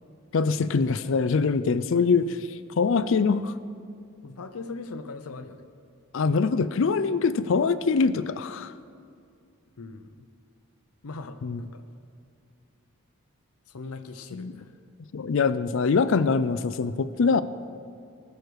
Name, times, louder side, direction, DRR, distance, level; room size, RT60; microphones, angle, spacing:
voice 1, 0.3-3.5 6.1-8.7 11.4-11.6 14.3-14.5 15.1-17.4, left 4 dB, 60° left, 14 dB, 0.4 m, -24 dB
voice 2, 4.2-5.7 9.8-10.3 11.0-11.8 13.7-14.7, left 3 dB, 90° left, 9 dB, 0.7 m, -40 dB
19.5 x 6.6 x 4.8 m, 2.3 s
head